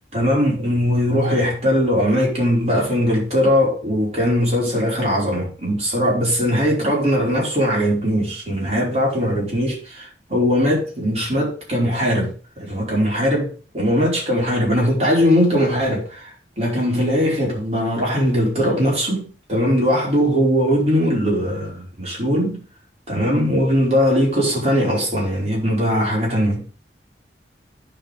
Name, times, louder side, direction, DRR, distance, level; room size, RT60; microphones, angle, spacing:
voice 1, 0.1-12.3 12.6-22.6 23.1-26.6, equal, 35° right, 5.1 m, -20 dB
15.5 x 5.4 x 3.6 m
head